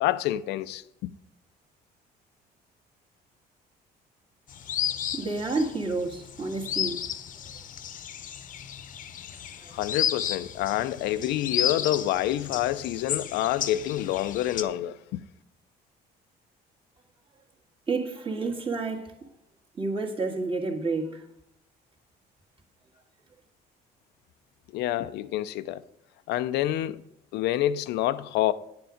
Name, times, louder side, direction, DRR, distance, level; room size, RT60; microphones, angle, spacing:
voice 1, 0.0-1.1 9.7-15.2 24.7-25.8 26.3-27.0 27.3-28.5, left 13 dB, 85° left, 0.5 m, -27 dB
sound 1, 4.5-14.6, left 9 dB, 50° left, 0.8 m, -33 dB
voice 2, 5.1-7.0 9.7-9.8 17.9-19.2 19.8-21.2, right 3 dB, 30° right, 1.8 m, -30 dB
9.6 x 7.9 x 5.0 m
cardioid pair, 110°, 17 cm